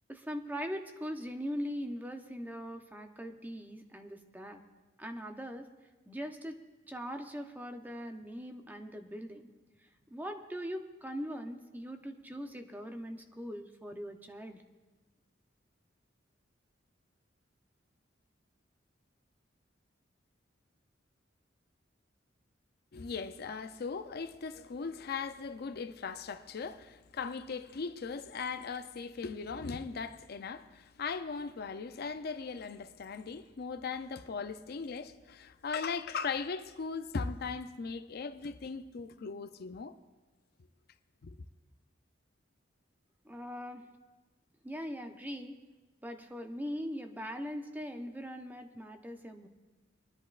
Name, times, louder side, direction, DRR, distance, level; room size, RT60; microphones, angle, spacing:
voice 1, 0.1-4.6 5.0-5.7 6.1-6.6 6.9-9.5 10.1-14.6 43.3-43.9 44.6-45.6 46.0-49.5, equal, 10° right, 0.6 m, -41 dB
voice 2, 22.9-39.9 41.2-41.5, left 5 dB, 55° left, 0.5 m, -38 dB
24.5 x 10.5 x 2.4 m
head